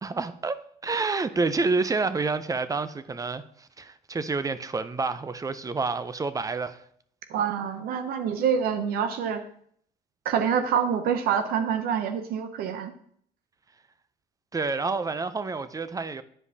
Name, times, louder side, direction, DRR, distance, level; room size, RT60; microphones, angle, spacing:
voice 1, 0.0-6.8 14.5-16.2, right 4 dB, 20° right, 0.5 m, -28 dB
voice 2, 7.3-9.4 10.2-12.9, right 7 dB, 75° right, 0.6 m, -26 dB
9.7 x 5.0 x 2.8 m
supercardioid pair, 80°, 16 cm